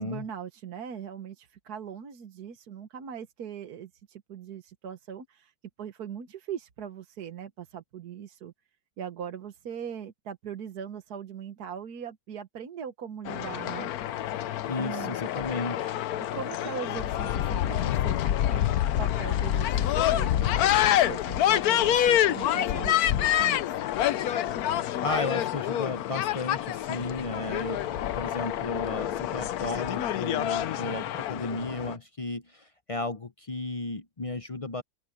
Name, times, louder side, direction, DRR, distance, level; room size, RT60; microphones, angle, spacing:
voice 1, 0.0-5.5 5.8-8.5 9.0-13.9 14.8-15.2 16.3-23.8, right 8 dB, 80° right, 1.7 m, -40 dB
sound 1, 13.2-32.0, left 12 dB, 75° left, 1.2 m, -27 dB
voice 2, 14.7-16.0 25.0-34.8, left 2 dB, 40° left, 0.5 m, -34 dB
omnidirectional pair, 1.6 m